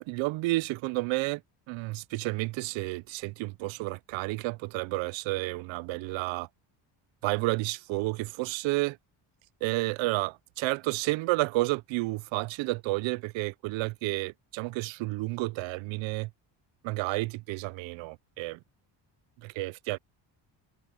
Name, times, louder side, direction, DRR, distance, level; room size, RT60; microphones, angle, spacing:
voice 1, 0.0-1.4 1.7-6.5 7.2-9.0 9.6-16.3 16.8-18.6 19.4-20.0, right 21 dB, 80° right, 0.6 m, -31 dB
cardioid pair, 130°, 45 cm